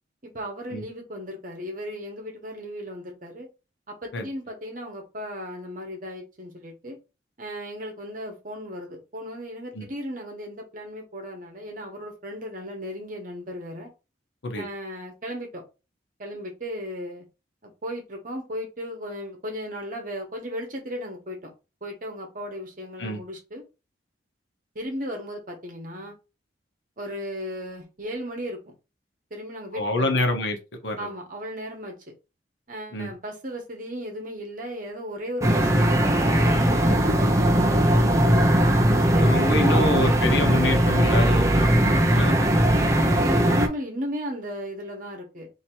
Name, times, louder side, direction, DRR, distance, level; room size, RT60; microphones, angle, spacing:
voice 1, 0.2-3.5 3.9-7.0 7.4-13.9 14.5-15.6 16.2-17.2 17.6-21.4 21.8-23.6 24.7-26.1 27.0-28.6 29.3-30.2 31.0-31.9 32.7-40.4 41.8-45.5, equal, 45° right, 2 dB, 1.2 m, -36 dB
voice 2, 29.7-30.6 30.8-31.1 32.9-33.1 39.2-42.4, left 2 dB, 80° left, 4 dB, 1.0 m, -26 dB
sound 1, 35.4-43.7, right 1 dB, 15° right, 0.5 m, -19 dB
2.9 x 2.8 x 4.4 m, 0.29 s
head